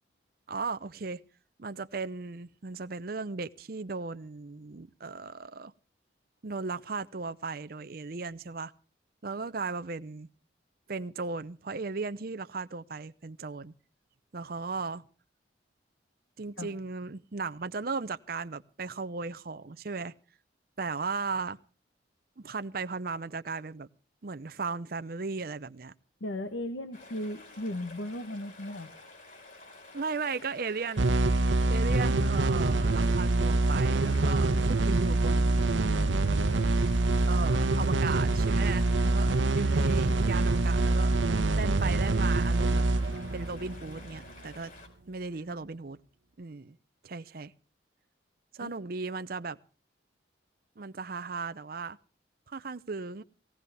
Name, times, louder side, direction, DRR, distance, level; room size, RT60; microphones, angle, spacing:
voice 1, 0.5-1.2 1.6-5.7 6.4-8.7 9.2-10.3 10.9-13.7 14.3-15.0 16.4-20.1 20.8-21.6 22.4-23.9 24.2-25.9 29.9-31.0 31.7-35.7 37.3-41.1 41.5-42.9 43.3-44.7 45.1-46.0 46.4-46.8 47.0-47.5 48.5-49.6 50.8-52.0 52.5-53.2, right 4 dB, 55° right, 0.6 m, -36 dB
voice 2, 26.2-28.9 45.5-45.6 48.6-48.7, left 1 dB, 90° left, 1.1 m, -36 dB
sound 1, 26.9-45.1, left 2 dB, 50° left, 5.0 m, -50 dB
sound 2, 31.0-44.3, right 2 dB, 90° right, 0.9 m, -25 dB
18.0 x 17.5 x 3.4 m
head